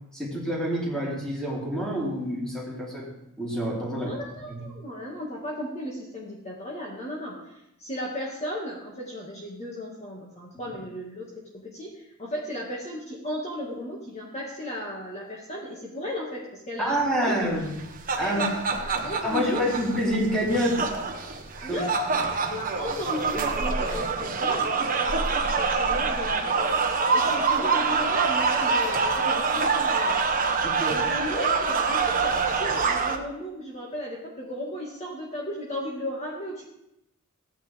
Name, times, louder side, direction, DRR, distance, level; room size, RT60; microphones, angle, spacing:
voice 1, 0.1-3.1 3.4-4.1 4.5-4.6 10.5-10.7 16.8-17.7 18.2-18.5 19.2-20.8 21.7-21.8 30.6-31.0, equal, 5° left, -5 dB, 3.6 m, -27 dB
voice 2, 3.9-11.3 11.5-17.8 18.1-19.6 21.6-24.7 25.0-26.7 27.1-30.2 30.9-36.7, left 1 dB, 30° left, -4 dB, 2.0 m, -35 dB
sound 1, 17.7-33.1, right 4 dB, 40° right, 1.2 m, -25 dB
16.0 x 9.4 x 3.5 m, 0.84 s
head